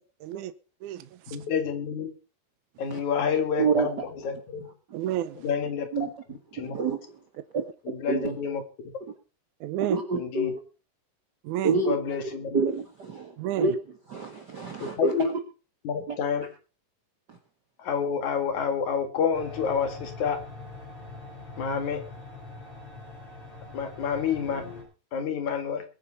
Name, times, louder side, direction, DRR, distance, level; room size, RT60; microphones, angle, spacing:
voice 1, 0.2-0.5 0.8-1.4 4.9-5.5 9.6-10.0 11.4-11.8 13.4-13.7, right 12 dB, 75° right, 2.2 m, -31 dB
voice 2, 1.3-2.1 2.8-3.9 4.2-4.4 4.6-4.7 5.4-5.9 6.5-6.8 7.9-8.6 10.1-10.5 11.9-12.6 15.0-15.2 15.8-16.5 17.8-20.4 21.6-22.0 23.7-24.8 25.1-25.8, left 7 dB, 70° left, 3.3 m, -28 dB
voice 3, 3.6-4.3 5.9-6.1 6.5-7.2 7.5-7.6 8.1-8.4 9.9-10.6 11.6-12.0 12.2-13.8 14.1-15.4 16.1-16.2 17.3-17.4, right 4 dB, 45° right, 1.4 m, -28 dB
sound 1, 19.3-24.8, left 3 dB, 45° left, 5.2 m, -43 dB
21.5 x 9.2 x 4.1 m
omnidirectional pair, 3.6 m